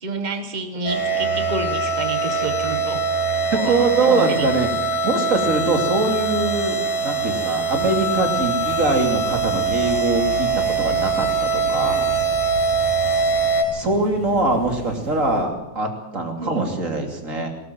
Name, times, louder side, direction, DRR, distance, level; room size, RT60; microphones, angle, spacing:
voice 1, 0.0-3.1 3.5-4.5 16.4-16.8, right 3 dB, 75° right, 8 dB, 0.4 m, -29 dB
sound 1, 0.9-13.6, right 4 dB, 70° left, 3.9 m, -22 dB
voice 2, 3.5-4.7 5.0-12.1 13.7-17.5, right 2 dB, 25° right, 4 dB, 3.0 m, -23 dB
sound 2, 7.8-15.4, right 2 dB, 50° right, 5.5 m, -37 dB
19.0 x 18.5 x 7.7 m, 0.86 s
omnidirectional pair, 3.5 m